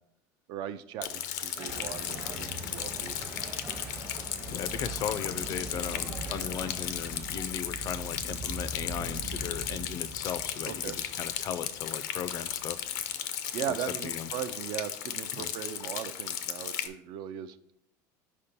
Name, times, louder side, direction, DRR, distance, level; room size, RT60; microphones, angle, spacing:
voice 1, 0.5-3.2 10.6-11.0 13.5-17.6, right 10 dB, 55° right, 12 dB, 0.4 m, -38 dB
Rain, 1.0-16.9, left 10 dB, 90° left, 0.6 m, -36 dB
sound 1, 1.5-7.7, right 3 dB, 20° right, 0.7 m, -46 dB
sound 2, 1.7-14.0, right 2 dB, 80° right, 1.2 m, -43 dB
voice 2, 4.5-12.8 13.7-13.8 14.0-14.3 15.4-15.5, left 8 dB, 45° left, 14 dB, 0.4 m, -37 dB
5.1 x 4.3 x 5.1 m, 0.73 s
supercardioid pair, 125°, 9 cm